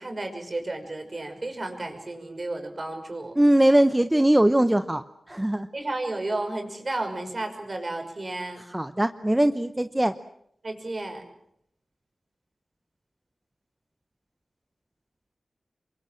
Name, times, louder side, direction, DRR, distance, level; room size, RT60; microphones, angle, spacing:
voice 1, 0.0-3.3 5.7-8.6 10.6-11.2, right 2 dB, 40° right, 6 dB, 5.8 m, -32 dB
voice 2, 3.4-5.7 8.7-10.2, right 1 dB, 15° right, 10 dB, 0.9 m, -21 dB
28.0 x 23.5 x 7.7 m, 0.74 s
wide cardioid pair, 80°, 0 cm